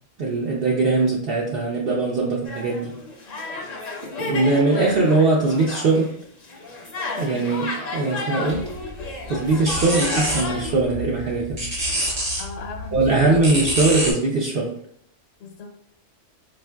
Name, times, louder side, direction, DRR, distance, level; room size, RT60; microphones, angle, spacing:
voice 1, 0.2-2.9 4.0-6.2 7.2-8.6 9.3-11.6 12.9-14.7, right 3 dB, 60° right, -3 dB, 0.7 m, -21 dB
sound 1, 2.5-6.1 6.4-10.8, left 2 dB, 45° left, 0.6 m, -32 dB
sound 2, 8.5-14.1, equal, 25° right, 0.9 m, -28 dB
voice 2, 12.4-13.4 15.4-15.7, left 4 dB, 85° left, 2 dB, 1.0 m, -37 dB
4.5 x 2.5 x 2.2 m, 0.65 s
omnidirectional pair, 1.3 m